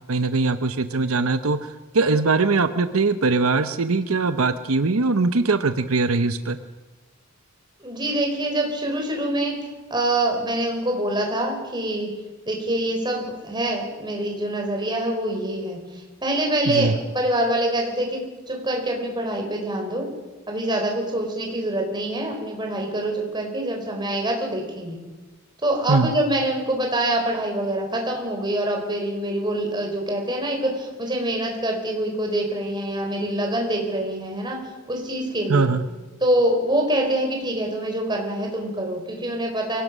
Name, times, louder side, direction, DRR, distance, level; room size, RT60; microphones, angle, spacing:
voice 1, 0.1-6.6 16.7-17.0 25.9-26.1 35.5-35.8, right 3 dB, 80° right, 10 dB, 0.9 m, -21 dB
voice 2, 7.8-9.6 9.9-12.1 12.5-20.1 20.5-25.0 25.6-34.6 34.9-35.7 36.2-39.8, right 1 dB, 20° right, 1 dB, 4.6 m, -25 dB
24.5 x 17.5 x 6.2 m, 1.2 s
head